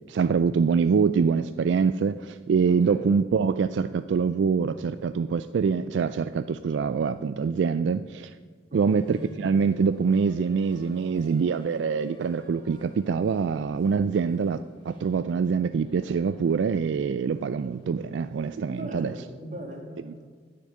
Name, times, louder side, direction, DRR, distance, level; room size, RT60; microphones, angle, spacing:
voice 1, 0.1-8.3 8.7-19.1, right 5 dB, 75° right, 12 dB, 0.3 m, -25 dB
voice 2, 8.7-9.0 18.7-20.2, right 1 dB, 40° right, 2 dB, 2.0 m, -38 dB
sound 1, 8.9-19.1, left 1 dB, 25° left, 2.4 m, -50 dB
10.0 x 6.6 x 8.9 m, 1.5 s
head